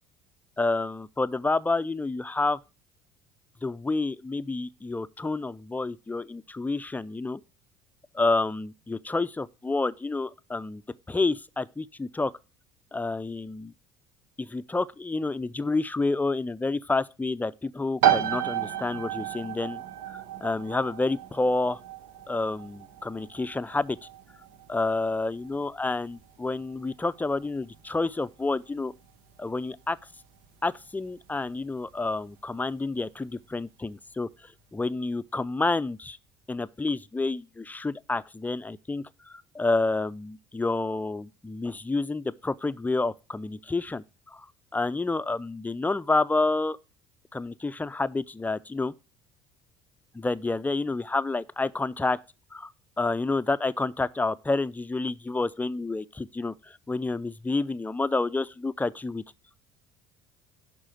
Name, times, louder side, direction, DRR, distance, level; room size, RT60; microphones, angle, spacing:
voice 1, 0.6-2.6 3.6-7.4 8.1-10.8 11.1-12.3 12.9-13.7 14.4-21.8 22.3-24.0 24.7-28.9 29.4-30.0 30.6-34.3 34.7-36.2 36.5-44.5 44.7-46.8 47.3-48.9 50.1-52.2 52.5-52.7 53.0-59.2, left 3 dB, 15° left, 0.5 m, -29 dB
sound 1, 18.0-32.5, right 11 dB, 70° right, 1.1 m, -33 dB
11.0 x 3.8 x 7.6 m
hypercardioid pair, 60°, 13 cm